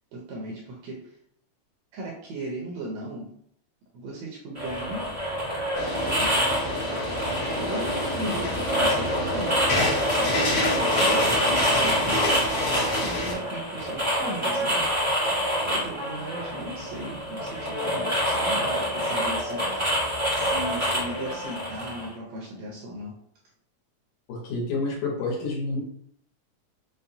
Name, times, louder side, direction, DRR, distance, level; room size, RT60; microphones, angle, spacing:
voice 1, 0.1-1.1 1.9-3.3 3.9-5.1 6.0-6.3 7.6-12.2 13.0-14.9 15.7-20.1 20.3-23.2, right 1 dB, 75° right, -2 dB, 1.6 m, -37 dB
sound 1, 4.5-22.1, equal, 40° right, 0.6 m, -27 dB
sound 2, 5.7-13.3, left 1 dB, 65° left, 1.3 m, -28 dB
voice 2, 24.3-25.8, left 3 dB, 80° left, -2 dB, 2.4 m, -29 dB
5.4 x 2.1 x 2.7 m, 0.67 s
omnidirectional pair, 3.5 m